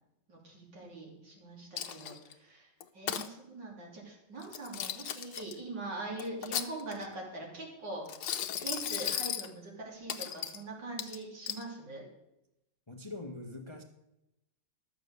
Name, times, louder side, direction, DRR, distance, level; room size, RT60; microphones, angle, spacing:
voice 1, 0.3-8.1 8.6-12.0, right 2 dB, 90° right, -2 dB, 3.7 m, -42 dB
Coin (dropping), 1.8-2.3 2.8-3.3 4.4-5.5 6.2-7.1 8.1-9.5 10.1-10.6 11.0-11.6, left 9 dB, 70° left, 1.3 m, -36 dB
voice 2, 12.9-13.8, left 2 dB, 20° left, 4 dB, 0.7 m, -43 dB
12.0 x 7.6 x 6.5 m, 0.89 s
omnidirectional pair, 1.9 m